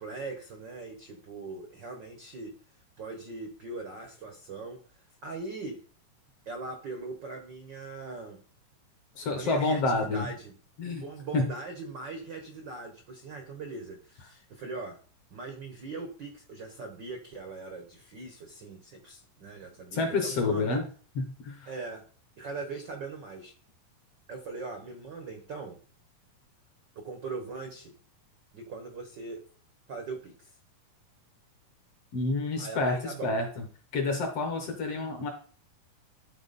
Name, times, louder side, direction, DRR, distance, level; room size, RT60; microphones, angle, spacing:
voice 1, 0.0-2.5 3.0-4.8 5.2-5.8 6.4-8.4 9.3-10.5 11.0-15.0 15.3-20.8 21.7-22.0 22.4-23.5 24.3-25.8 26.9-27.9 28.5-29.4 29.9-30.5 32.6-33.4 34.7-34.8, right 3 dB, 75° right, 4 dB, 1.0 m, -40 dB
voice 2, 9.2-10.3 10.8-11.0 11.3-11.5 19.9-20.8 21.2-21.7 32.1-33.6 33.9-35.3, left 3 dB, 60° left, 4 dB, 1.8 m, -29 dB
13.0 x 4.3 x 4.1 m, 0.41 s
omnidirectional pair, 3.8 m